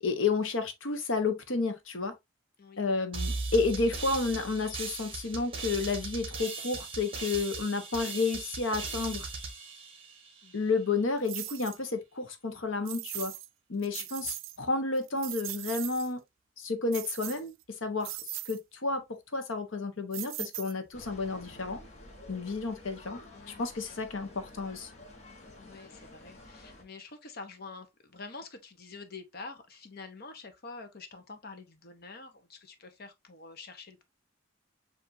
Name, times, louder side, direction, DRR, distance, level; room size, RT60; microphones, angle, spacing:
voice 1, 0.0-2.1 2.8-9.3 10.5-13.3 13.7-16.2 16.6-17.5 17.8-18.1 18.5-19.0 19.3-21.8 22.3-23.2 23.6-24.9, left 3 dB, 80° left, 1.0 m, -31 dB
sound 1, 3.1-10.6, right 3 dB, 30° right, 1.2 m, -38 dB
sound 2, 11.3-11.8 12.9-13.5 13.8-14.6 15.0-16.1 16.9-17.6 18.0-18.6 20.1-21.0, right 16 dB, 80° right, 0.4 m, -39 dB
sound 3, 20.9-26.8, left 2 dB, 35° left, 1.3 m, -51 dB
voice 2, 23.3-24.0 25.6-34.0, left 3 dB, 50° left, 0.9 m, -47 dB
6.9 x 2.7 x 2.6 m
head